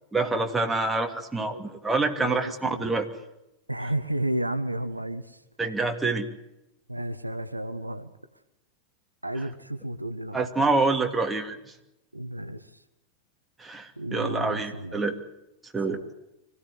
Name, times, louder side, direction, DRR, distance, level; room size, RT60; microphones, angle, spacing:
voice 1, 0.1-3.1 5.6-6.3 10.3-11.6 13.6-15.2 15.7-16.0, right 3 dB, 10° right, 2 dB, 2.7 m, -26 dB
voice 2, 2.2-2.9 3.7-5.4 6.9-8.1 9.2-10.5 12.1-12.7 14.0-15.0 15.9-16.0, right 1 dB, 85° right, 10 dB, 1.3 m, -32 dB
24.5 x 16.0 x 10.0 m, 0.88 s
figure-of-eight pair, 90°, 0 cm